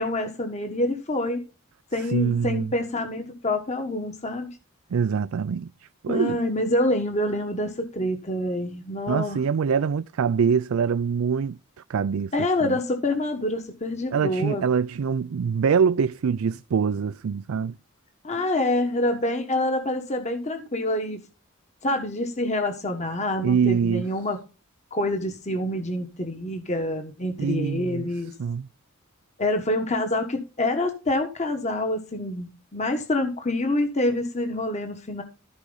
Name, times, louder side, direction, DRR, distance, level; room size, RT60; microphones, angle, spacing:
voice 1, 0.0-1.4 1.9-4.6 6.1-9.4 12.3-14.7 18.2-21.2 21.8-24.4 24.9-28.3 29.4-35.2, left 1 dB, 35° left, 1.4 m, -26 dB
voice 2, 2.1-2.7 4.9-5.7 6.0-6.4 9.1-11.6 11.9-12.3 12.6-12.8 14.1-17.7 23.4-24.1 27.4-28.1 28.4-28.7, right 6 dB, 75° right, 0.4 m, -24 dB
14.5 x 4.9 x 4.0 m
head